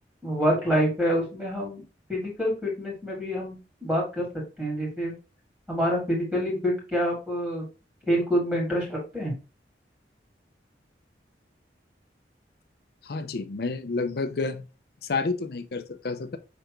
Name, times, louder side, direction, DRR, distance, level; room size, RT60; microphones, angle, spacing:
voice 1, 0.2-1.8 2.1-3.6 3.8-4.3 4.6-5.1 5.7-7.6 8.1-9.3, equal, 5° right, 2.0 m, -26 dB
voice 2, 13.0-14.7 15.0-16.4, left 3 dB, 60° left, 0.5 m, -30 dB
5.1 x 3.3 x 2.9 m
head